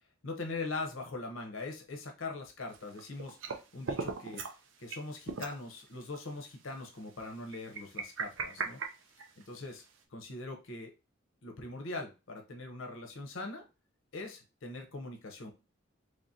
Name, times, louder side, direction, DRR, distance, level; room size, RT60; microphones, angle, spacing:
voice 1, 0.2-3.4 3.7-4.4 4.8-8.8 9.4-9.8 10.1-10.9 11.4-13.6 14.1-15.5, left 3 dB, 80° left, 3 dB, 0.8 m, -41 dB
sound 1, 2.7-3.6 3.8-4.6 4.9-5.0 5.3-5.6 6.1-6.2 7.5-9.6, right 4 dB, 70° right, 0.6 m, -37 dB
3.7 x 3.3 x 2.7 m, 0.29 s
head